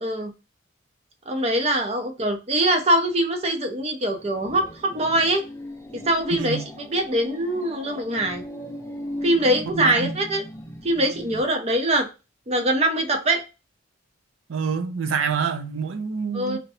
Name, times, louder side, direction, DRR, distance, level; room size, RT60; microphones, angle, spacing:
voice 1, 0.0-0.3 1.3-5.4 5.9-8.4 9.2-10.4 10.8-12.1 12.5-13.4 16.3-16.6, right 1 dB, 30° right, 0.6 m, -23 dB
sound 1, 4.1-11.4, equal, 15° left, 0.4 m, -38 dB
voice 2, 6.3-6.7 9.7-10.1 14.5-16.6, right 6 dB, 75° right, 0.5 m, -27 dB
2.6 x 2.2 x 4.0 m
head